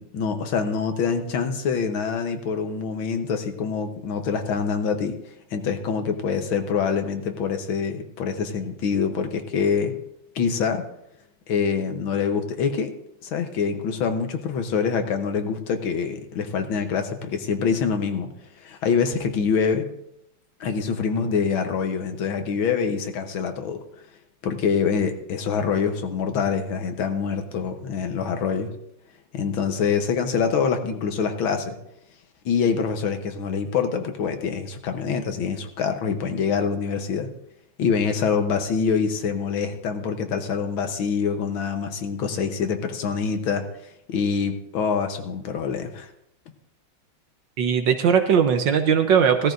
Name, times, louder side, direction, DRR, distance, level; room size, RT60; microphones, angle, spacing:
voice 1, 0.0-5.1 5.5-9.9 10.4-10.8 11.5-12.9 13.2-18.3 18.6-19.9 20.6-23.8 24.4-28.7 29.3-31.8 32.5-37.3 37.8-43.7 44.1-46.1, left 6 dB, 75° left, 6 dB, 1.8 m, -25 dB
voice 2, 47.6-49.5, right 7 dB, 65° right, 7 dB, 1.5 m, -19 dB
16.5 x 14.0 x 2.6 m, 0.78 s
omnidirectional pair, 2.3 m